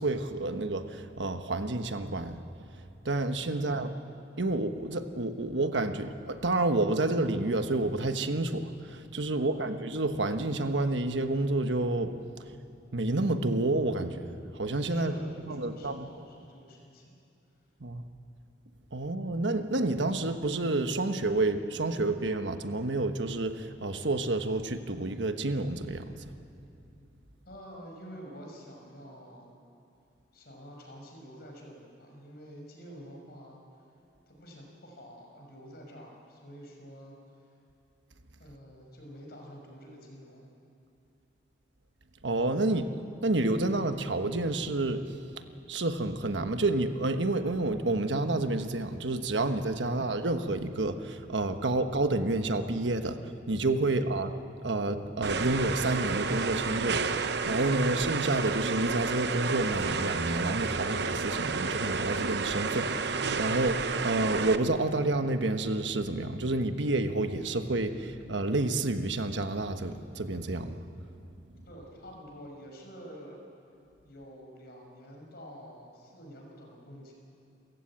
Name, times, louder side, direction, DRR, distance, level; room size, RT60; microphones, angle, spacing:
voice 1, 0.0-2.4 3.0-3.9 4.4-12.1 12.9-14.3 14.5-15.2 15.4-16.1 17.8-18.0 18.9-26.1 42.2-42.9 43.2-45.1 45.7-54.3 54.6-70.8, right 2 dB, 80° right, 8 dB, 1.3 m, -29 dB
voice 2, 3.5-3.9 9.3-9.7 14.9-17.1 27.5-29.5 30.3-33.6 34.3-37.2 38.4-40.5 53.9-54.2 71.7-73.4 74.0-77.1, equal, 60° left, 0 dB, 5.8 m, -48 dB
sound 1, 55.2-64.6, right 4 dB, 65° right, 0.9 m, -31 dB
29.0 x 15.5 x 8.8 m, 2.7 s
head